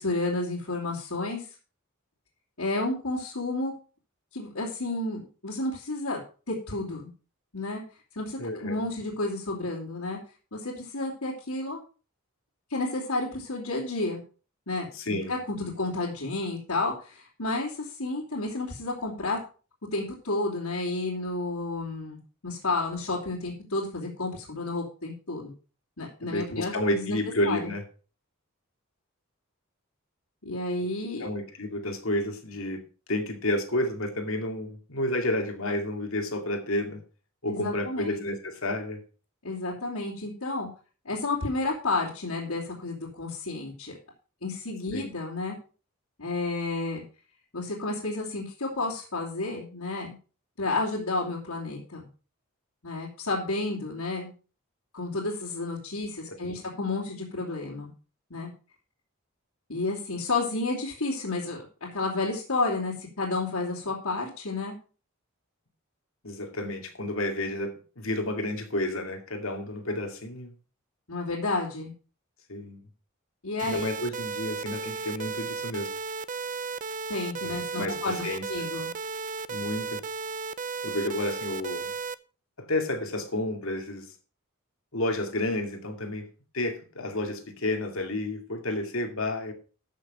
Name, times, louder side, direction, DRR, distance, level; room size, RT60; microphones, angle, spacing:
voice 1, 0.0-1.4 2.6-3.7 4.3-6.2 6.5-7.1 7.5-7.8 8.1-10.2 10.5-11.8 12.7-14.2 14.7-19.4 19.9-25.5 26.0-27.2 27.5-27.7 30.4-31.3 37.5-38.2 39.4-40.7 41.0-43.9 44.4-45.6 46.2-47.0 47.5-50.1 50.6-52.1 52.8-54.3 54.9-57.9 58.3-58.5 59.7-61.6 61.9-64.7 71.1-71.9 73.4-73.9 77.1-78.9, left 2 dB, 85° left, 3.0 m, -31 dB
voice 2, 8.4-8.8 14.9-15.4 26.3-27.8 31.2-32.8 33.1-37.0 37.4-39.0 44.9-45.1 56.3-56.6 66.2-70.5 72.5-72.8 73.6-75.9 77.4-78.4 79.5-80.0 80.8-81.9 82.6-84.1 84.9-86.3 86.5-89.5, left 1 dB, 70° left, 2.3 m, -31 dB
sound 1, 73.6-82.1, right 5 dB, 35° right, 0.5 m, -34 dB
13.0 x 6.2 x 4.9 m
head